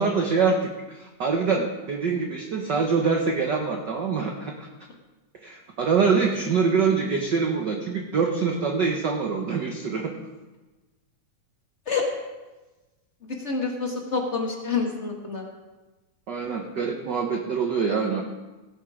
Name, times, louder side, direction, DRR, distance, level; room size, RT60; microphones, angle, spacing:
voice 1, 0.0-4.7 5.4-10.1 16.3-18.2, right 5 dB, 75° right, 2 dB, 1.0 m, -25 dB
voice 2, 13.4-15.4, left 5 dB, 30° left, 0 dB, 1.3 m, -27 dB
17.5 x 7.9 x 4.9 m, 1.2 s
omnidirectional pair, 3.5 m